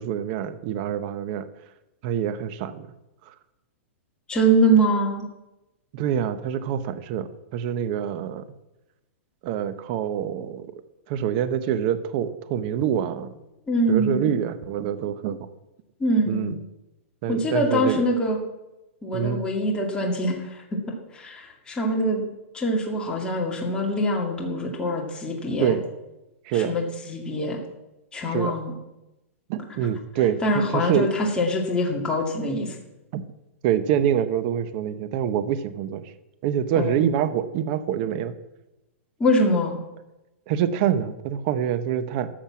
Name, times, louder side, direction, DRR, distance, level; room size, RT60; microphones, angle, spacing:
voice 1, 0.0-1.5 2.0-2.9 3.3-3.4 5.9-8.4 9.4-10.7 11.1-13.4 13.9-15.5 16.3-16.6 17.2-18.1 19.1-19.4 25.6-25.8 26.4-26.8 28.3-28.6 29.5-31.1 33.1-33.2 33.6-36.1 36.4-38.4 40.5-42.3, right 9 dB, 45° right, 13 dB, 1.0 m, -26 dB
voice 2, 4.3-5.3 13.7-14.3 16.0-16.5 17.3-18.4 19.0-20.6 21.1-22.2 22.5-25.8 26.5-27.6 28.1-28.7 30.4-32.7 36.8-37.0 39.2-39.8, equal, 10° left, -1 dB, 2.1 m, -24 dB
13.5 x 6.6 x 7.3 m, 0.99 s
hypercardioid pair, 145°, 7 cm